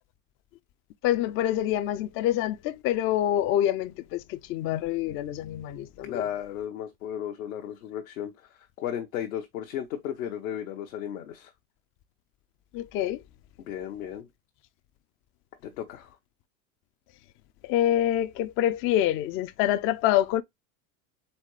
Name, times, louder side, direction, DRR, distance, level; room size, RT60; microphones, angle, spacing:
voice 1, 1.0-6.3 12.7-13.2 17.6-20.4, left 12 dB, 35° left, 0.4 m, -26 dB
voice 2, 6.0-11.5 13.7-14.3 15.6-16.2, left 10 dB, 75° left, 0.9 m, -35 dB
4.2 x 3.6 x 3.1 m
hypercardioid pair, 95°, 42 cm